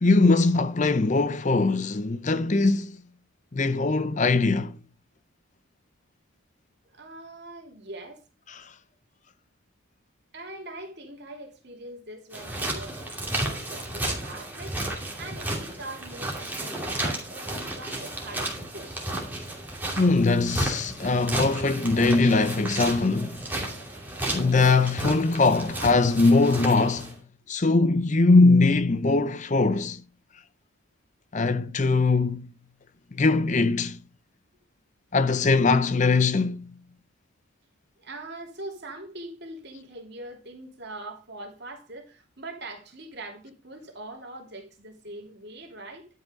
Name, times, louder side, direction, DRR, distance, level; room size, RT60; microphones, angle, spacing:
voice 1, 0.0-3.0 3.5-4.8 8.5-8.7 20.0-23.4 24.3-27.1 27.5-30.0 31.3-32.5 33.1-34.0 35.1-36.6, left 3 dB, 35° left, 0.6 m, -21 dB
voice 2, 6.9-8.2 10.3-14.8 15.2-19.1 38.0-46.1, right 2 dB, 50° right, 3.0 m, -42 dB
sound 1, 12.3-27.1, right 1 dB, 10° right, 2.6 m, -33 dB
11.5 x 5.6 x 5.2 m
head